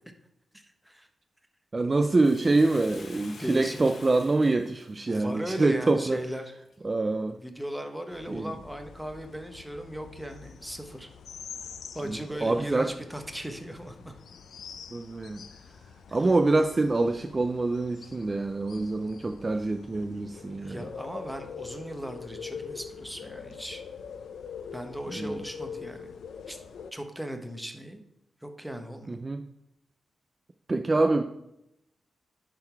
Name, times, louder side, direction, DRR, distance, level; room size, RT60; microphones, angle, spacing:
voice 1, 0.5-1.1 3.3-3.8 5.1-6.5 7.4-11.1 11.9-14.1 16.1-16.3 20.6-23.8 24.7-26.1 26.5-26.6 26.9-28.0 28.4-29.3, right 1 dB, 5° right, 5 dB, 0.8 m, -37 dB
voice 2, 1.7-6.2 6.8-7.4 8.3-8.5 12.0-12.9 14.9-15.4 16.1-20.8 25.1-25.4 29.1-29.4 30.7-31.2, right 2 dB, 25° right, 6 dB, 0.3 m, -25 dB
Bathtub (filling or washing), 2.2-6.7 7.3-7.4, left 4 dB, 55° left, 0.9 m, -49 dB
sound 1, 8.1-26.9, left 6 dB, 90° left, 0.5 m, -44 dB
10.5 x 3.9 x 4.4 m, 0.85 s
wide cardioid pair, 125°, 0 cm